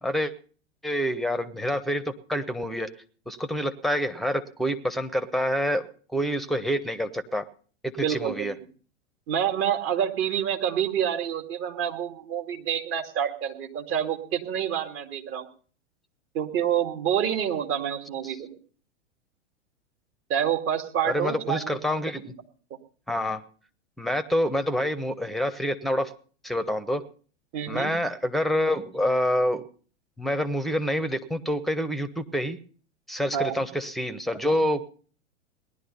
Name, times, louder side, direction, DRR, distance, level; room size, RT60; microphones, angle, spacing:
voice 1, 0.0-0.3 0.8-2.9 3.3-7.4 7.8-8.5 21.0-22.3 23.1-23.4 24.0-26.1 26.4-27.0 27.7-29.6 30.2-32.6 33.1-34.8, equal, ahead, 12 dB, 1.1 m, -27 dB
voice 2, 8.0-8.5 9.3-15.5 16.3-18.6 20.3-21.8 22.2-22.3 27.5-27.9 33.3-33.5, right 9 dB, 35° right, 5 dB, 2.4 m, -27 dB
18.5 x 11.5 x 5.5 m, 0.43 s
figure-of-eight pair, 100°, 36 cm